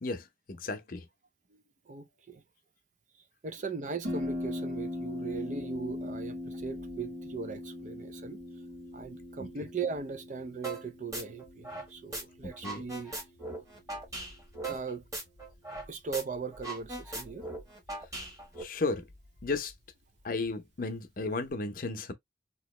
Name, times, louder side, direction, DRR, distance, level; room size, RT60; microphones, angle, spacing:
voice 1, 0.5-1.0 12.6-12.8 18.6-19.0 19.4-19.7 20.2-22.1, left 3 dB, 50° left, 0.7 m, -33 dB
voice 2, 1.5-2.4 3.4-8.4 8.9-13.1 14.7-15.0 15.9-17.5, right 5 dB, 45° right, 0.5 m, -39 dB
Harp, 4.0-21.5, left 1 dB, 85° right, 1.4 m, -42 dB
sound 1, 10.6-10.8 11.1-12.2 12.5-15.9 16.1-16.2 16.5-18.6, right 2 dB, 20° right, 1.2 m, -39 dB
2.9 x 2.9 x 3.0 m
head